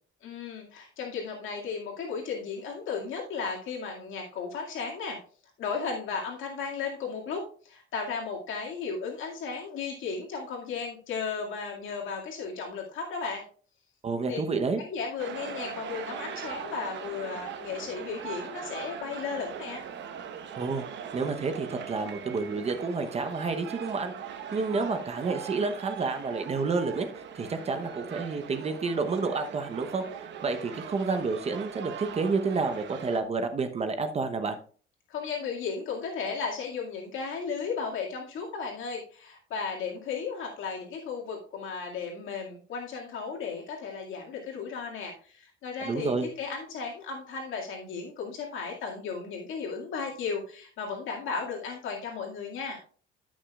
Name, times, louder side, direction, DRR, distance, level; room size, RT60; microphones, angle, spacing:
voice 1, 0.2-5.2 5.6-13.4 14.3-14.4 14.8-19.8 35.1-52.8, left 5 dB, 70° left, -1 dB, 2.2 m, -35 dB
voice 2, 14.0-14.8 20.6-34.6 45.8-46.3, right 4 dB, 30° right, 8 dB, 0.9 m, -30 dB
sound 1, 15.2-33.2, right 8 dB, 60° right, 1.1 m, -40 dB
14.0 x 6.2 x 2.4 m, 0.42 s
cardioid pair, 140°, 21 cm